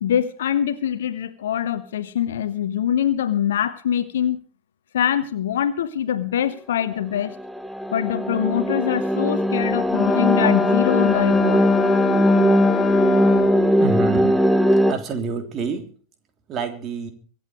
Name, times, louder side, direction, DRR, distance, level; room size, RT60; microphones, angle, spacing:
voice 1, 0.0-4.4 4.9-7.4 7.9-11.7, left 10 dB, 60° left, 13 dB, 1.1 m, -24 dB
sound 1, 7.2-14.9, equal, ahead, 1.1 m, -20 dB
Wind instrument woodwind instrument, 9.9-13.8, left 9 dB, 25° left, 0.7 m, -23 dB
voice 2, 13.8-14.5 14.9-15.9 16.5-17.1, right 5 dB, 30° right, 7 dB, 3.1 m, -27 dB
24.0 x 8.2 x 5.0 m, 0.42 s
figure-of-eight pair, 90°, 0 cm